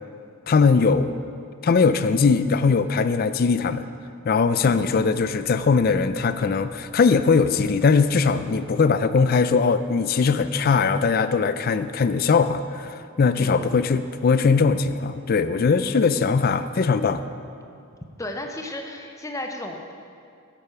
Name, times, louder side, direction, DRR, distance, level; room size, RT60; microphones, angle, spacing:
voice 1, 0.5-1.2 1.6-3.8 4.3-17.3, left 5 dB, 45° left, 12 dB, 0.4 m, -20 dB
voice 2, 4.6-5.0 13.3-13.8 15.8-16.3 18.2-19.9, left 1 dB, 15° left, 3 dB, 0.7 m, -35 dB
sound 1, 4.6-10.0, equal, 45° right, 2.6 m, -49 dB
8.4 x 8.4 x 5.7 m, 2.4 s
head